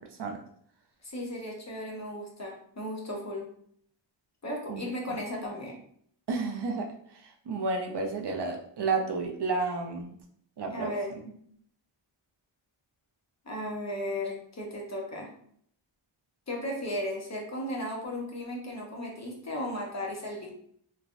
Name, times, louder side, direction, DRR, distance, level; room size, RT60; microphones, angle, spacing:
voice 1, 1.0-3.4 4.4-5.8 10.7-11.4 13.5-15.3 16.5-20.5, left 1 dB, 35° left, -1 dB, 0.7 m, -35 dB
voice 2, 6.3-6.9 7.5-10.2 10.6-10.9, right 4 dB, 60° right, 2 dB, 0.5 m, -31 dB
3.3 x 2.1 x 2.4 m, 0.64 s
wide cardioid pair, 85°, 48 cm